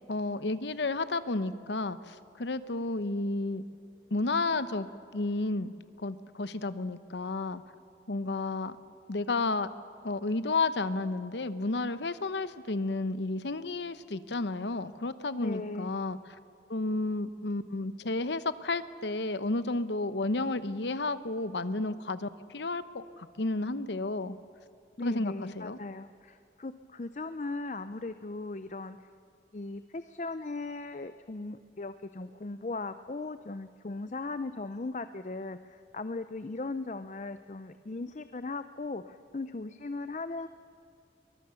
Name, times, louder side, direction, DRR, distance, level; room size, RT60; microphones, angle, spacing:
voice 1, 0.1-3.6 4.1-4.9 5.1-7.6 8.1-8.8 9.1-9.7 10.0-16.2 16.7-24.4 25.0-25.8, left 2 dB, 85° left, 13 dB, 0.9 m, -32 dB
voice 2, 15.4-15.9 25.0-29.1 29.5-40.5, left 3 dB, 40° left, 11 dB, 0.5 m, -38 dB
23.0 x 21.0 x 7.0 m, 2.4 s
head